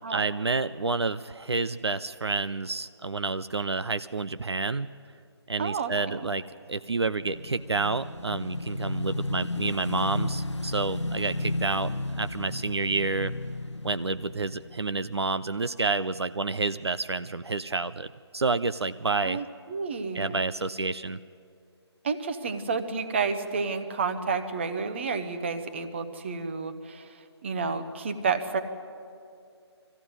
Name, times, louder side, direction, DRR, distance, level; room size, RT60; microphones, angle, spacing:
voice 1, 0.1-4.9 5.5-6.4 6.7-13.3 13.8-18.1 18.3-19.4 20.1-21.2, right 3 dB, 70° right, 13 dB, 0.5 m, -29 dB
voice 2, 5.6-6.2 19.2-20.4 22.0-28.6, right 5 dB, 25° right, 9 dB, 0.9 m, -30 dB
Motorcycle / Engine, 6.8-15.4, left 2 dB, 90° left, 0.8 m, -33 dB
20.0 x 15.0 x 9.3 m, 2.4 s
figure-of-eight pair, 150°, 14 cm